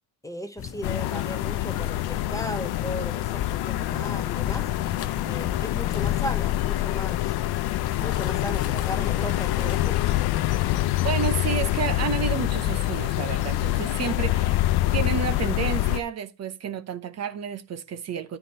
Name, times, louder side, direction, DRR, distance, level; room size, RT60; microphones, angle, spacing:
voice 1, 0.2-4.7 5.3-7.3 8.0-10.0, equal, 10° left, 0.8 m, -36 dB
sound 1, 0.6-11.4, left 9 dB, 40° left, 0.8 m, -38 dB
sound 2, 0.8-16.0, left 15 dB, 85° left, 0.7 m, -26 dB
voice 2, 11.0-14.6 14.9-18.4, right 8 dB, 45° right, 0.8 m, -30 dB
10.5 x 4.5 x 5.5 m
cardioid pair, 155°, 37 cm